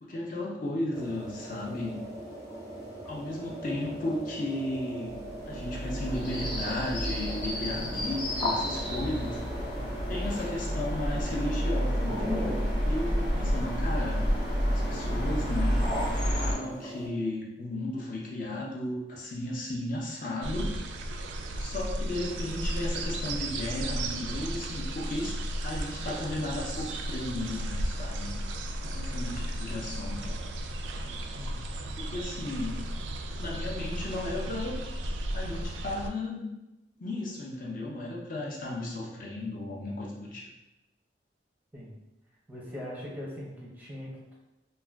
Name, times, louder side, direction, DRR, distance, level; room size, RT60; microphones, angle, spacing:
voice 1, 0.0-2.0 3.1-5.2 5.5-9.4 10.1-14.2 14.7-15.8 16.4-20.7 21.6-28.4 28.9-30.4 32.0-32.8 33.4-34.8 35.3-36.5 37.0-40.5, left 1 dB, 50° left, -3 dB, 0.5 m, -34 dB
sound 1, 0.9-17.1, equal, 20° left, 0.8 m, -39 dB
sound 2, 5.1-16.5, equal, 65° left, 0.9 m, -30 dB
sound 3, 20.4-36.1, right 1 dB, 80° right, 0.3 m, -34 dB
voice 2, 31.4-31.8 41.7-41.9 42.5-44.3, left 1 dB, 10° right, -4 dB, 0.5 m, -41 dB
2.4 x 2.2 x 3.3 m, 0.96 s
head